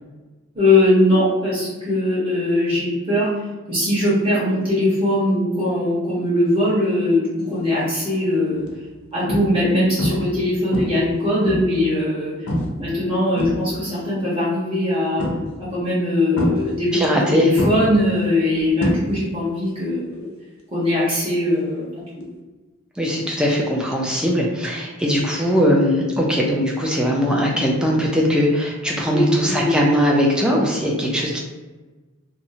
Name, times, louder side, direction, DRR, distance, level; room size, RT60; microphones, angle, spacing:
voice 1, 0.5-3.3 3.7-8.7 9.1-12.3 12.8-15.2 15.6-20.3 20.7-21.8 29.0-29.7, left 1 dB, 25° right, -9 dB, 1.1 m, -20 dB
sound 1, 7.7-8.0 8.6-8.7 9.3-9.7 10.0-10.4 10.7-11.9 12.5-12.8 13.1-14.0 15.2-15.7 16.4-17.2 17.6-19.5 19.7-20.1 22.2-22.3, equal, 85° left, 0.6 m, -25 dB
voice 2, 16.9-17.5 23.0-31.4, equal, 5° right, -1 dB, 0.3 m, -20 dB
2.7 x 2.0 x 2.7 m, 1.2 s
head